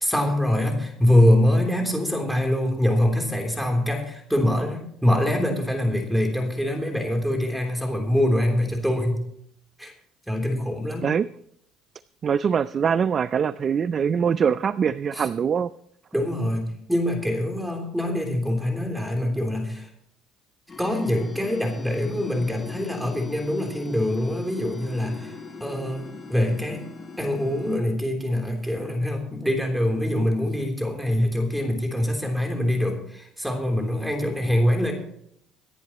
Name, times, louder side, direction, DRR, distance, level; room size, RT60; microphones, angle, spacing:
voice 1, 0.0-9.2 9.8-9.9 10.3-11.1 15.1-15.3 16.1-19.9 20.8-25.3 25.6-26.8 27.2-34.9, left 1 dB, 5° right, 2 dB, 3.4 m, -24 dB
voice 2, 12.2-15.7, right 7 dB, 40° right, 16 dB, 0.4 m, -23 dB
sound 1, 20.7-27.8, left 4 dB, 30° left, 3.4 m, -40 dB
25.0 x 10.5 x 3.0 m, 0.71 s
cardioid pair, 100°, 0 cm